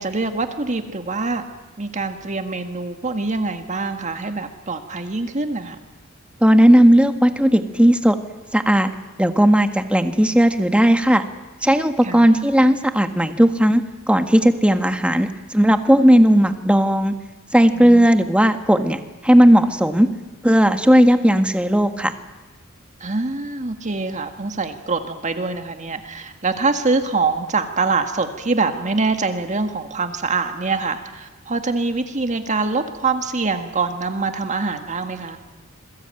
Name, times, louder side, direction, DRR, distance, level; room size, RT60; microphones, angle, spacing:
voice 1, 0.0-1.4 1.8-5.8 12.0-12.3 17.7-18.1 23.0-35.4, right 3 dB, 35° right, 7 dB, 1.7 m, -24 dB
voice 2, 6.4-8.2 8.5-8.9 9.2-11.2 11.6-17.1 17.5-20.1 20.4-22.1, equal, 5° right, 7 dB, 1.5 m, -15 dB
27.5 x 22.0 x 9.0 m, 1.2 s
head